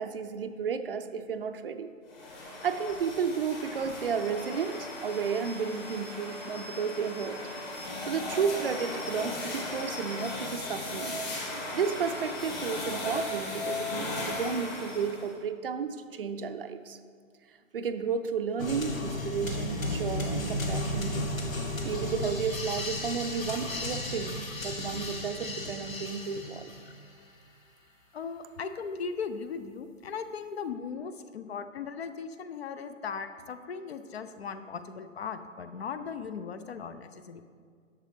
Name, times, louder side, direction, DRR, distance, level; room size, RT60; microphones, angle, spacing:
voice 1, 0.0-1.9 2.6-7.4 8.1-11.2 11.7-17.0 17.7-21.4 21.8-26.7, right 6 dB, 45° right, 9 dB, 0.5 m, -32 dB
sound 1, 2.1-15.3, left 2 dB, 30° left, 1.8 m, -37 dB
sound 2, 18.6-27.1, left 1 dB, 80° left, 1.2 m, -34 dB
voice 2, 28.1-37.4, left 6 dB, 50° left, 11 dB, 0.5 m, -38 dB
11.0 x 6.6 x 3.4 m, 2.1 s
figure-of-eight pair, 130°, 40 cm